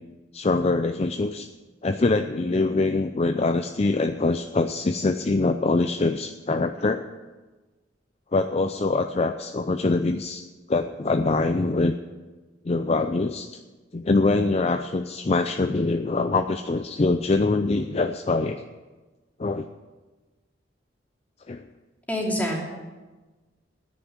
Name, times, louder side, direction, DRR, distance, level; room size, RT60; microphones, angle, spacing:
voice 1, 0.3-1.5 1.8-7.0 8.3-10.4 10.7-11.9 12.6-13.6 13.9-18.6 19.4-19.7 21.5-21.6, left 3 dB, 35° left, 8 dB, 0.5 m, -24 dB
voice 2, 22.1-22.6, equal, 10° left, -2 dB, 2.7 m, -26 dB
10.0 x 9.5 x 8.9 m, 1.2 s
head